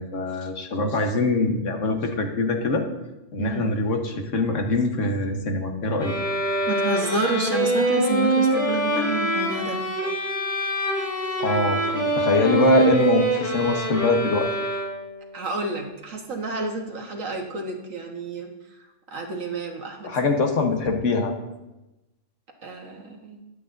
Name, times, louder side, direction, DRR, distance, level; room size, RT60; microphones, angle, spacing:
voice 1, 0.0-2.8 3.3-6.1 11.4-14.5 20.0-21.3, left 3 dB, 70° left, 4 dB, 1.6 m, -23 dB
voice 2, 3.4-3.7 6.7-9.8 15.3-18.5 19.1-20.1 22.6-23.4, right 3 dB, 80° right, 2 dB, 1.8 m, -30 dB
sound 1, 6.0-15.2, right 1 dB, 35° left, 3.3 m, -24 dB
21.5 x 8.4 x 2.7 m, 1.0 s
omnidirectional pair, 1.4 m